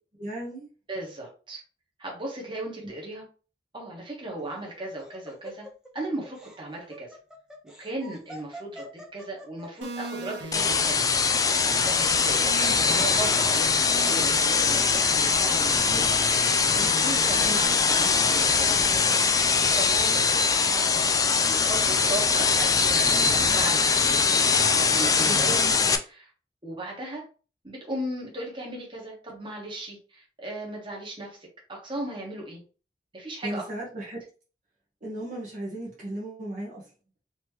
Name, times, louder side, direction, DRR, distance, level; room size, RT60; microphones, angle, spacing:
voice 1, 0.2-0.7 25.2-25.6 33.4-34.2 35.0-36.8, right 1 dB, 50° right, -4 dB, 1.2 m, -35 dB
voice 2, 0.9-1.6 2.0-3.2 3.7-5.7 5.9-7.2 7.8-11.1 11.8-16.1 16.4-19.0 19.5-20.4 20.9-25.5 26.1-26.3 26.6-27.3 27.6-31.4 31.7-32.6 33.1-33.7, right 2 dB, 30° right, -2 dB, 1.4 m, -37 dB
Laughter, 4.4-9.8, equal, 5° right, 0.8 m, -45 dB
sound 1, 9.8-25.7, right 1 dB, 90° right, 0.9 m, -41 dB
sound 2, 10.5-26.0, left 5 dB, 20° left, 0.4 m, -22 dB
4.2 x 3.0 x 3.1 m, 0.36 s
head